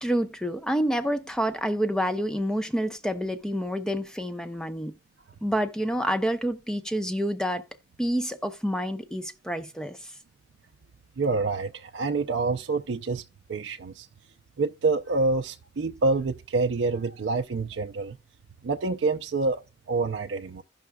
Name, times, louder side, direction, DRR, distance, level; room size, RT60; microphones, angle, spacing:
voice 1, 0.0-5.0 5.4-7.6 8.0-10.1, equal, 5° left, 0.5 m, -28 dB
voice 2, 11.2-13.2 13.5-14.1 14.6-18.2 18.6-19.6 19.9-20.6, right 3 dB, 75° right, 0.5 m, -27 dB
15.5 x 5.7 x 2.2 m
head